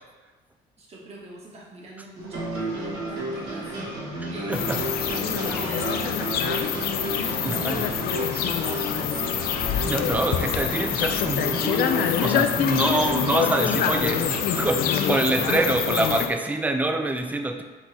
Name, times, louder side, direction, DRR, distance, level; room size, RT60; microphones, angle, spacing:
voice 1, 0.8-3.7 4.3-9.1 10.0-10.6, right 2 dB, 40° right, -4 dB, 1.1 m, -42 dB
sound 1, 2.1-16.0, right 1 dB, 85° right, 1.4 m, -33 dB
voice 2, 4.2-4.8 7.4-7.9 9.8-17.6, right 2 dB, 10° right, 6 dB, 0.4 m, -26 dB
sound 2, 4.5-16.3, left 9 dB, 65° left, 0.4 m, -26 dB
6.0 x 2.1 x 4.0 m, 1.3 s
cardioid pair, 110°, 17 cm